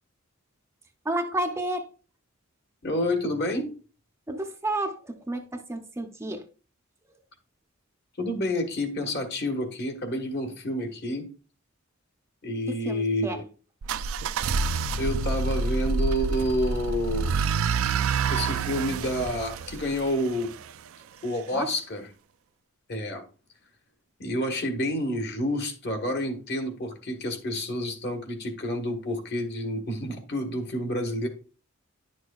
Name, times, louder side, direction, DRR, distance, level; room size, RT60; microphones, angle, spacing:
voice 1, 1.1-1.9 4.3-6.5 12.7-13.4 21.5-21.7, right 1 dB, 15° right, 0.6 m, -31 dB
voice 2, 2.8-3.8 8.2-11.3 12.4-13.4 15.0-17.4 18.3-20.5 21.2-22.1 22.9-23.2 24.2-31.3, left 1 dB, 55° left, 1.5 m, -29 dB
sound 1, 13.8-20.7, right 5 dB, 75° right, 0.4 m, -28 dB
10.5 x 6.2 x 2.3 m
head